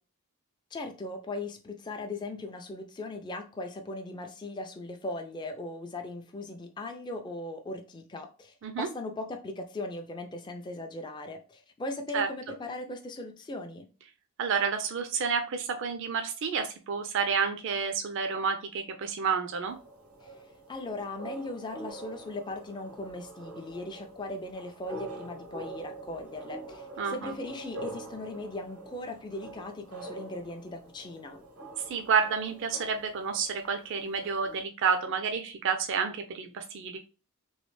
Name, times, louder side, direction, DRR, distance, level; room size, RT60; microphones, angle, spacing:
voice 1, 0.7-13.9 20.2-20.3 20.7-31.4, left 2 dB, 20° left, 0.3 m, -38 dB
voice 2, 14.4-19.7 27.0-27.3 31.9-37.0, right 6 dB, 60° right, 0.4 m, -30 dB
sound 1, 19.6-34.6, right 2 dB, 85° right, 0.9 m, -45 dB
3.1 x 2.8 x 3.1 m
head